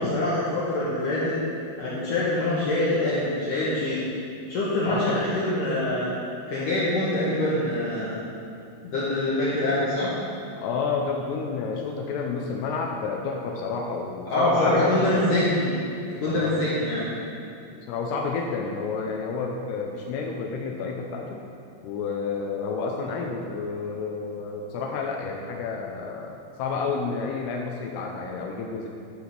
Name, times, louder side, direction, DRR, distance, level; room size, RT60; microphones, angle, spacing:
voice 1, 0.0-1.4 1.8-4.0 4.5-6.1 6.5-8.2 8.8-10.1 14.3-15.7 16.1-17.1, left 1 dB, 65° left, -9 dB, 2.3 m, -24 dB
voice 2, 4.9-5.2 10.6-15.3 16.2-16.7 17.8-21.4 21.8-28.9, left 4 dB, 80° left, 1 dB, 2.5 m, -30 dB
11.0 x 5.0 x 5.8 m, 2.5 s
omnidirectional pair, 5.1 m